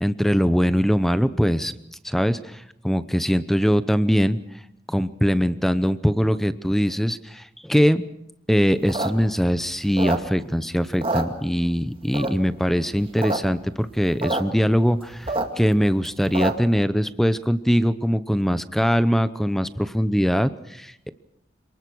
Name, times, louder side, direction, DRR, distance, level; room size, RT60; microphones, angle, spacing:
voice 1, 0.0-1.7 2.0-4.4 4.9-8.0 8.5-21.1, equal, ahead, 13 dB, 0.8 m, -22 dB
sound 1, 8.7-10.6 10.9-11.8 12.1-12.6 13.0-13.4 13.6-13.7 13.9-14.4 14.8-16.8, right 2 dB, 30° right, 2.2 m, -27 dB
27.5 x 19.5 x 6.2 m, 0.83 s
head